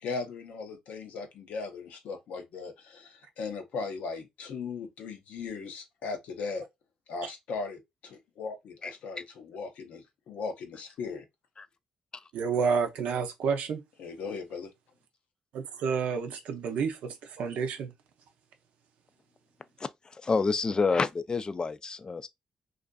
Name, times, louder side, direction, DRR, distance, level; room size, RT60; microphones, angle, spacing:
voice 1, 0.0-6.6 7.1-11.3 14.0-14.7, left 4 dB, 80° left, 0.6 m, -38 dB
voice 2, 12.3-13.8 15.5-17.9, right 6 dB, 80° right, 0.5 m, -30 dB
voice 3, 20.2-22.3, left 4 dB, 35° left, 0.3 m, -28 dB
2.5 x 2.4 x 2.2 m
supercardioid pair, 60°, 2 cm